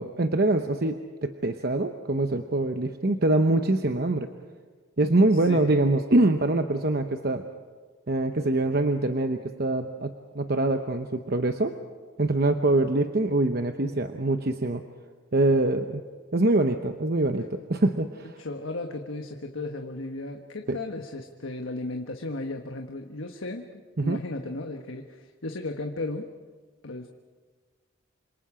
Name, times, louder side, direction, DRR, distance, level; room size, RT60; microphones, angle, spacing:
voice 1, 0.0-4.3 5.0-7.4 8.1-11.7 12.2-14.8 15.3-16.0 16.3-18.3 20.7-20.8 24.0-24.2, right 2 dB, 50° right, 6 dB, 0.9 m, -24 dB
voice 2, 5.3-5.8 18.4-26.3 26.8-27.1, left 2 dB, 80° left, 4 dB, 1.3 m, -35 dB
27.5 x 26.5 x 5.0 m, 1.5 s
head